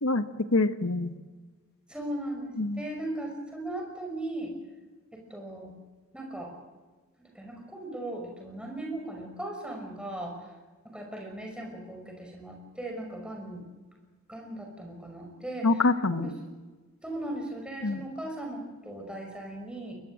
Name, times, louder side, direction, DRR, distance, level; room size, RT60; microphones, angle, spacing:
voice 1, 0.5-1.1 2.6-2.8 15.6-16.3 17.8-18.0, left 3 dB, 80° left, 10 dB, 1.4 m, -25 dB
voice 2, 1.9-4.5 5.1-5.7 6.1-6.5 7.2-10.3 10.8-13.6 14.3-15.7 16.1-16.3 17.0-19.9, right 1 dB, 5° right, 1 dB, 5.7 m, -38 dB
22.5 x 21.0 x 7.8 m, 1.3 s
head